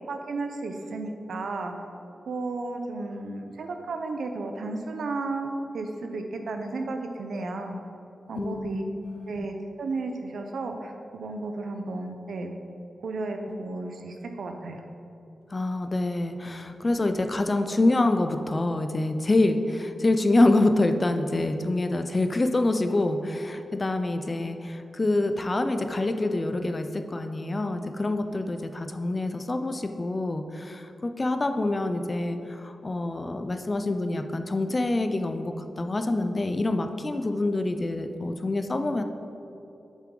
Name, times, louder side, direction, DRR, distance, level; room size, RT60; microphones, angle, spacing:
voice 1, 0.1-1.7 2.3-7.8 8.3-8.9 9.3-12.5 13.0-14.8, right 3 dB, 80° right, 5 dB, 0.7 m, -33 dB
voice 2, 8.3-8.8 9.0-9.5 15.5-39.0, left 2 dB, 25° left, 7 dB, 0.4 m, -26 dB
7.4 x 7.1 x 3.8 m, 2.8 s
wide cardioid pair, 175°, 0 cm